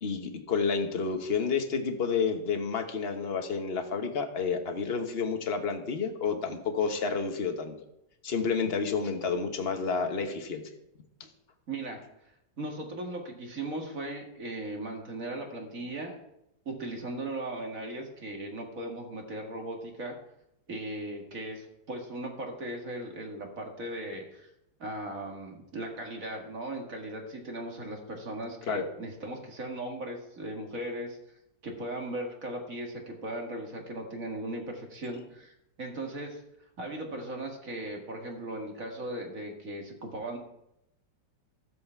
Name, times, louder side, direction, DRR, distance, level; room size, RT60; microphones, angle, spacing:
voice 1, 0.0-7.8 8.2-10.6 28.7-28.8, left 5 dB, 40° left, 5 dB, 1.2 m, -30 dB
voice 2, 11.7-12.0 12.6-16.2 16.7-20.2 20.7-24.5 24.8-31.2 31.6-36.4 36.8-40.4, right 1 dB, 50° right, 1 dB, 2.2 m, -38 dB
12.5 x 7.7 x 4.5 m, 0.82 s
omnidirectional pair, 1.9 m